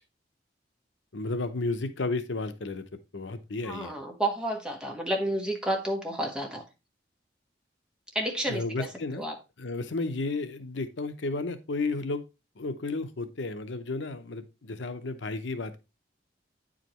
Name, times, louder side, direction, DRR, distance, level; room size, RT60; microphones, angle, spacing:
voice 1, 1.1-2.8 3.1-3.9 8.5-9.2 9.6-12.2 12.6-15.8, left 3 dB, 80° left, 10 dB, 0.7 m, -32 dB
voice 2, 3.6-6.6 8.1-8.6 9.2-9.3, right 1 dB, 5° right, 1 dB, 1.3 m, -30 dB
9.0 x 5.0 x 3.0 m, 0.27 s
head